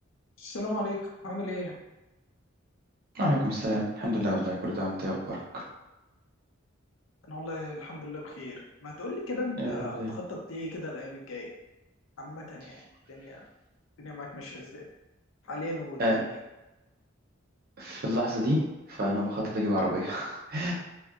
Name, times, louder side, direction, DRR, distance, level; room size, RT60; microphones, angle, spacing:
voice 1, 0.4-1.7 7.3-11.5 12.2-12.8 13.1-13.4 14.0-14.8 15.4-16.4, left 1 dB, 70° left, -1 dB, 0.6 m, -37 dB
voice 2, 3.1-5.6 9.6-10.1 16.0-16.2 17.8-18.6 18.9-20.7, equal, 50° right, -3 dB, 0.6 m, -29 dB
2.7 x 2.1 x 2.4 m, 1.0 s
head